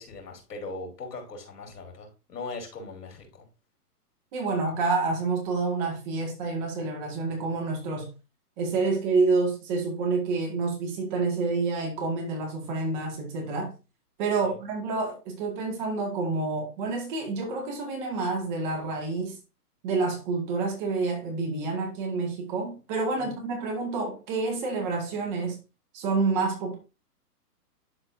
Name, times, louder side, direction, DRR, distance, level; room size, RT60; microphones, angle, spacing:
voice 1, 0.0-3.5 14.4-14.6 23.2-23.3, left 3 dB, 80° left, 4.1 m, -40 dB
voice 2, 4.3-8.1 8.6-13.7 14.2-19.4 19.8-25.6 25.9-26.8, right 3 dB, 30° right, 2.1 m, -28 dB
12.0 x 4.3 x 2.7 m
hypercardioid pair, 160°, 47 cm